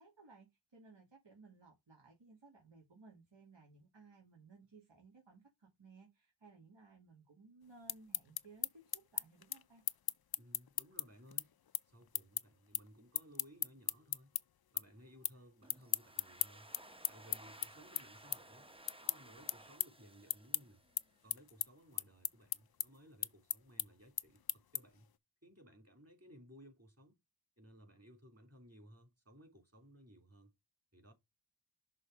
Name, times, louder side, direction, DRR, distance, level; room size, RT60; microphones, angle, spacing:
voice 1, 0.0-9.8, right 3 dB, 65° right, 2.4 m, -61 dB
sound 1, 7.7-14.4 14.8-15.4 15.7-25.1, left 9 dB, 50° left, 0.5 m, -38 dB
voice 2, 10.3-11.5 11.9-14.3 14.7-16.7 17.1-18.7 19.0-20.8 21.2-25.1 25.4-27.2 27.6-30.5 30.9-31.1, equal, 30° right, 3.5 m, -60 dB
Domestic sounds home sounds, 15.6-21.2, right 1 dB, 10° right, 0.8 m, -58 dB
6.3 x 3.7 x 5.0 m
wide cardioid pair, 50°, 47 cm